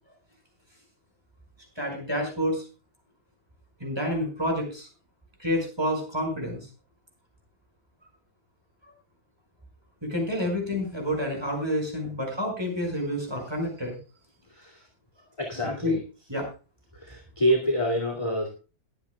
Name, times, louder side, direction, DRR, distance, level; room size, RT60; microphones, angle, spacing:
voice 1, 1.8-2.7 3.8-4.9 5.4-6.7 10.0-14.0 15.8-16.0 16.3-16.5, equal, 15° right, 1 dB, 5.6 m, -28 dB
voice 2, 14.5-14.9 15.4-16.0 16.9-18.6, equal, 15° left, 2 dB, 2.3 m, -27 dB
22.0 x 9.1 x 2.3 m, 0.32 s
omnidirectional pair, 2.0 m